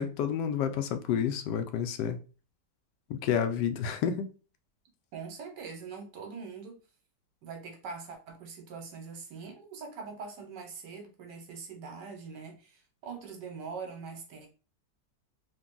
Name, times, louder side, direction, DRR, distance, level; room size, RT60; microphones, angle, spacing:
voice 1, 0.0-2.2 3.1-4.3, left 8 dB, 80° left, 1.2 m, -30 dB
voice 2, 5.1-6.8 7.4-14.5, right 5 dB, 75° right, 1.6 m, -43 dB
3.9 x 2.6 x 3.7 m
omnidirectional pair, 1.9 m